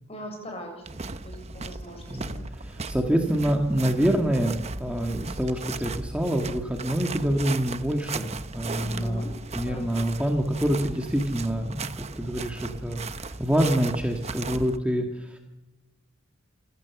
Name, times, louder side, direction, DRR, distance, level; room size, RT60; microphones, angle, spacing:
voice 1, 0.1-0.9 1.2-2.5 8.7-9.9, equal, 30° left, 3 dB, 7.2 m, -40 dB
sound 1, 0.9-14.8, right 3 dB, 30° right, 0.9 m, -37 dB
voice 2, 2.1-9.2 9.5-15.4, equal, 5° right, 2 dB, 1.8 m, -26 dB
28.5 x 15.5 x 7.1 m, 1.1 s
head